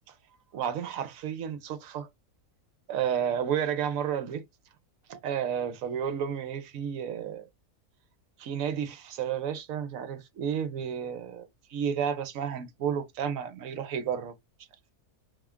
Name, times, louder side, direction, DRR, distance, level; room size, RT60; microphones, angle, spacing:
voice 1, 0.5-2.1 2.9-4.4 5.1-7.5 8.4-14.3, right 8 dB, 65° right, 1.0 m, -31 dB
3.7 x 2.3 x 3.5 m
omnidirectional pair, 1.7 m